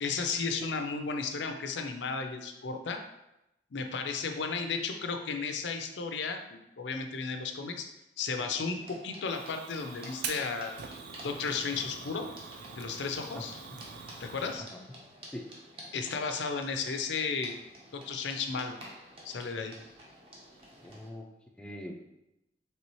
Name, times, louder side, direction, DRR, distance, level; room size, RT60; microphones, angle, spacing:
voice 1, 0.0-3.0 3.7-7.9 8.2-10.7 11.2-12.3 12.8-13.5 14.2-14.7 15.9-17.6 17.9-18.8 19.2-19.7, left 5 dB, 75° left, 6 dB, 0.5 m, -34 dB
sound 1, 8.4-21.1, equal, 30° right, 0.9 m, -51 dB
Fire, 9.2-14.6, right 5 dB, 60° right, 0.4 m, -44 dB
voice 2, 20.8-22.0, left 1 dB, 5° left, 2 dB, 0.4 m, -42 dB
4.2 x 3.3 x 3.0 m, 0.88 s
head